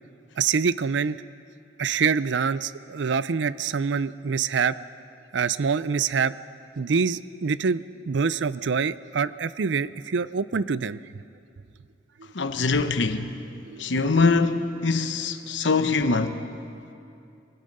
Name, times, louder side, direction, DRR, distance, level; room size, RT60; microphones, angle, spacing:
voice 1, 0.4-1.2 1.8-4.7 5.3-6.3 6.8-11.0 13.7-13.8, right 5 dB, 80° right, 0.5 m, -25 dB
voice 2, 12.3-13.4 13.8-16.4, left 4 dB, 80° left, 0.9 m, -23 dB
24.5 x 20.5 x 5.4 m
head